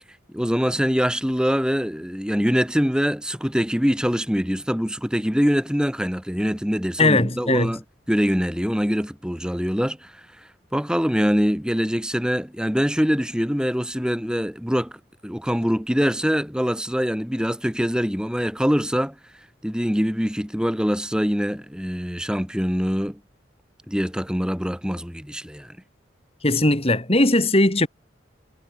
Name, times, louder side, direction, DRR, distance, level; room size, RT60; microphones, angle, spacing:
voice 1, 0.3-7.8 8.1-10.1 10.7-19.2 19.6-23.2 23.9-25.8, equal, 5° right, 3.8 m, -24 dB
voice 2, 7.0-7.8 26.4-27.9, left 2 dB, 30° left, 3.7 m, -19 dB
head